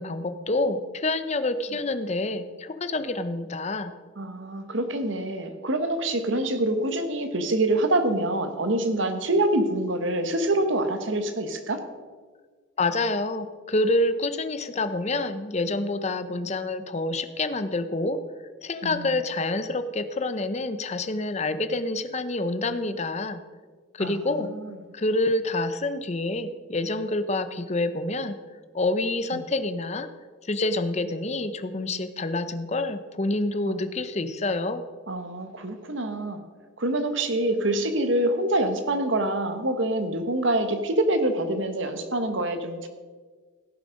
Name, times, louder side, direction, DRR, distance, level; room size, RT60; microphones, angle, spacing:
voice 1, 0.0-3.9 12.8-18.2 18.6-23.4 23.9-24.5 24.9-28.4 28.7-30.1 30.5-34.8, left 2 dB, 35° left, 10 dB, 0.7 m, -27 dB
voice 2, 4.2-11.8 18.8-19.1 24.0-24.8 29.3-29.4 33.6-33.8 35.1-36.5 36.8-42.9, right 1 dB, 70° right, 7 dB, 1.3 m, -26 dB
16.5 x 7.4 x 5.2 m, 1.5 s
head